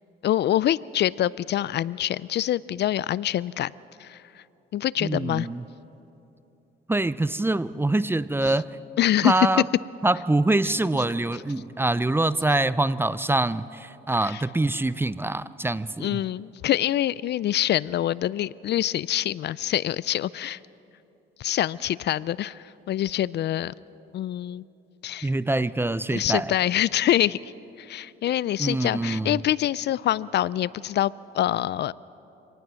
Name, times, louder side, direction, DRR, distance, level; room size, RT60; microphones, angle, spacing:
voice 1, 0.2-3.7 4.0-4.4 4.7-5.5 8.5-8.6 9.0-9.5 14.2-14.4 16.0-20.6 21.4-23.7 24.1-24.6 25.0-25.3 26.1-27.5 27.8-31.9, left 12 dB, 60° left, 21 dB, 0.4 m, -25 dB
voice 2, 5.0-5.6 6.9-8.7 9.2-9.6 10.0-16.2 25.2-26.5 28.6-29.3, right 2 dB, 10° right, 16 dB, 0.5 m, -24 dB
25.5 x 18.5 x 6.3 m, 2.9 s
cardioid pair, 90°, 20 cm